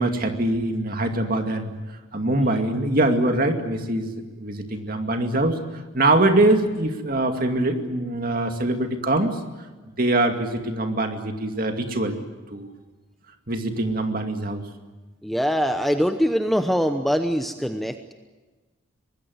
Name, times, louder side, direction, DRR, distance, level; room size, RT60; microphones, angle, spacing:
voice 1, 0.0-1.7 2.1-9.4 10.0-12.2 12.5-12.7 13.5-14.6, right 2 dB, 45° right, 5 dB, 2.3 m, -23 dB
voice 2, 15.2-18.1, equal, ahead, 7 dB, 0.8 m, -23 dB
24.5 x 20.0 x 9.6 m, 1.2 s
head